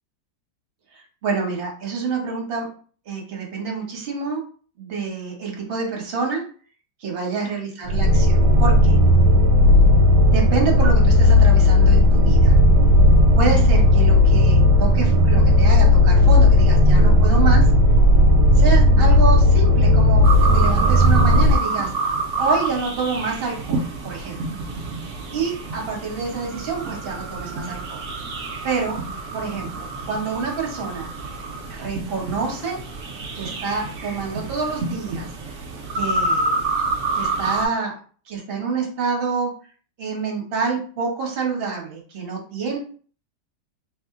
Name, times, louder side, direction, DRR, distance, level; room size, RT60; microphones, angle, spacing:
voice 1, 1.2-2.7 3.1-4.4 4.8-6.4 7.0-9.0 10.3-12.6 13.3-17.6 18.6-21.9 22.4-24.4 25.3-28.0 28.6-29.0 29.3-31.1 31.7-32.8 33.3-35.3 35.9-36.5 37.1-37.9 38.3-39.5 40.0-42.8, right 4 dB, 40° right, -1 dB, 1.0 m, -27 dB
sound 1, 7.9-21.6, left 1 dB, 90° right, 1.2 m, -14 dB
sound 2, 20.2-37.7, right 3 dB, 70° right, 0.7 m, -28 dB
3.1 x 2.1 x 3.6 m, 0.42 s
omnidirectional pair, 1.8 m